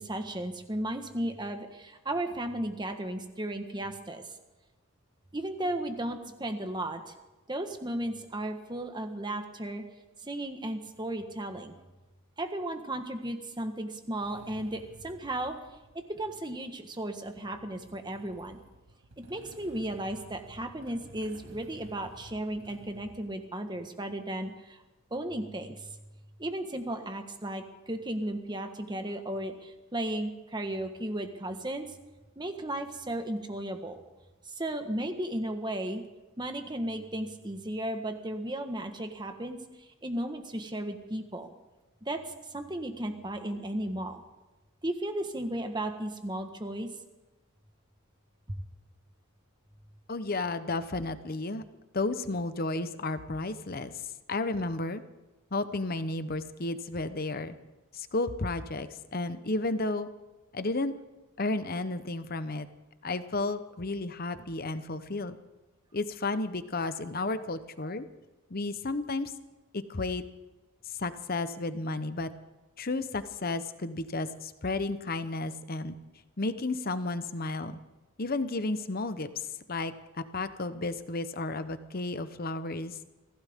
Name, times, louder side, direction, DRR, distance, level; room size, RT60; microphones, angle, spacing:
voice 1, 0.0-4.2 5.3-7.1 7.5-9.8 10.2-11.7 12.4-15.6 16.1-18.6 19.2-24.8 25.1-25.9 26.4-31.9 32.4-34.0 34.4-36.0 36.4-39.6 40.0-41.5 42.0-42.2 42.5-44.2 44.8-46.9 48.5-48.6, right 1 dB, 20° right, 6 dB, 1.4 m, -35 dB
Motorcycle / Engine starting, 14.2-23.3, right 2 dB, 85° right, 2.0 m, -53 dB
voice 2, 50.1-51.6 51.9-54.0 54.3-55.0 55.5-57.6 57.9-60.1 60.5-60.9 61.4-62.7 63.0-65.4 65.9-68.1 68.5-69.3 69.7-70.2 70.8-72.3 72.8-75.9 76.4-77.8 78.2-79.9 80.3-83.0, left 2 dB, 45° left, 11 dB, 0.9 m, -32 dB
24.0 x 16.0 x 3.7 m, 1.1 s
head